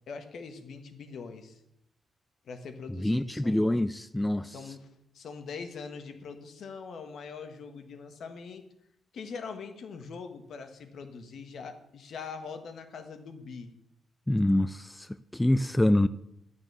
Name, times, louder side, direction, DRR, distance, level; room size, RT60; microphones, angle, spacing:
voice 1, 0.1-1.6 2.4-3.6 4.4-4.9 5.1-8.6 9.1-13.7, left 5 dB, 60° left, 1.5 m, -42 dB
voice 2, 3.0-4.6 14.3-16.1, left 1 dB, 5° left, 0.3 m, -26 dB
11.5 x 7.0 x 6.9 m
cardioid pair, 140°, 0 cm